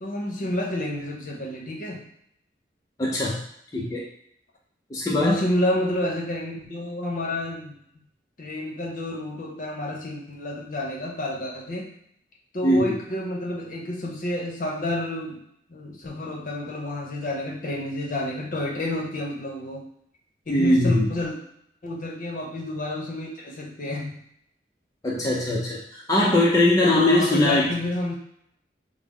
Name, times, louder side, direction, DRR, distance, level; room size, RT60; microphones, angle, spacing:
voice 1, 0.0-2.0 5.1-7.7 8.4-11.9 12.5-15.4 15.7-19.9 20.5-21.4 21.8-24.2 26.8-28.1, left 1 dB, 50° left, -1 dB, 0.8 m, -29 dB
voice 2, 3.0-3.4 3.7-4.0 4.9-5.4 12.6-13.0 20.5-21.1 25.0-25.8 26.1-27.7, left 1 dB, 20° left, -4 dB, 0.4 m, -21 dB
5.0 x 2.0 x 3.5 m, 0.73 s
head